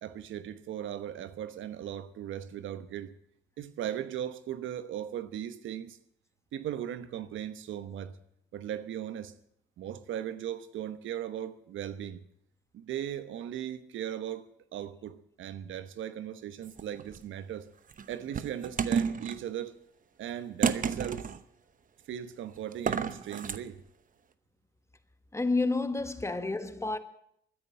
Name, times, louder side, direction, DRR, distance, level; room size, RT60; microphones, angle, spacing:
voice 1, 0.0-3.1 3.6-6.0 6.5-8.2 8.5-9.3 9.8-12.2 12.7-17.7 18.1-19.8 20.2-21.3 22.1-23.8, right 10 dB, 75° right, 1.0 m, -38 dB
sound 1, 16.6-17.2 17.9-19.4 20.6-21.4 22.7-23.6, right 6 dB, 40° right, 0.9 m, -31 dB
voice 2, 25.3-27.0, left 3 dB, 15° left, 1.5 m, -29 dB
14.0 x 9.9 x 8.6 m
cardioid pair, 90°, 20 cm